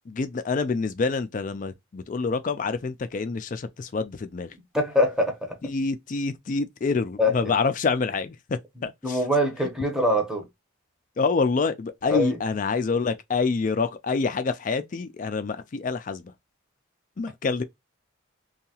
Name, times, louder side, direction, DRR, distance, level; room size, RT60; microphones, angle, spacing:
voice 1, 0.1-4.5 5.6-9.2 11.2-16.3 17.2-17.6, left 4 dB, 40° left, 0.3 m, -27 dB
voice 2, 4.7-5.4 7.2-7.5 9.0-10.5 12.1-12.4, left 1 dB, 5° right, 0.7 m, -23 dB
2.8 x 2.3 x 2.8 m
head